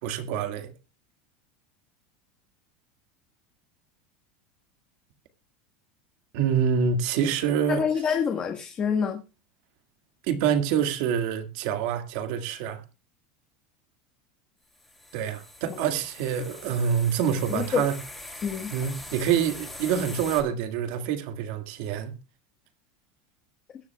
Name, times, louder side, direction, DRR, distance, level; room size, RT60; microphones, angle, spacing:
voice 1, 0.0-0.7 6.3-7.9 10.2-12.8 15.1-18.0 18.7-22.1, right 8 dB, 55° right, 2.0 m, -26 dB
voice 2, 7.7-9.2 15.7-15.8 17.5-17.8 18.4-18.7, left 7 dB, 20° left, 1.5 m, -26 dB
sound 1, 14.7-20.4, left 2 dB, 5° left, 3.1 m, -42 dB
21.5 x 10.0 x 2.3 m
supercardioid pair, 170°, 5 cm